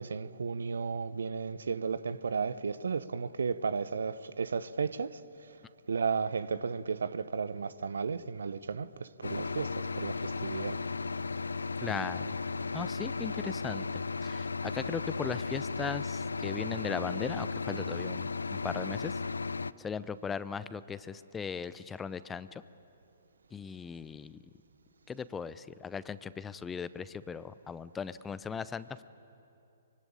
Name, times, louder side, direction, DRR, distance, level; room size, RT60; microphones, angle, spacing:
voice 1, 0.0-5.2 5.9-10.8, right 5 dB, 70° right, 0.9 m, -34 dB
sound 1, 9.2-19.7, left 4 dB, 80° left, 0.5 m, -35 dB
voice 2, 11.8-12.4 12.7-19.1 19.8-22.6 23.5-24.4 25.1-29.0, left 6 dB, 10° left, 0.7 m, -38 dB
24.5 x 24.0 x 9.0 m
figure-of-eight pair, 125°, 0 cm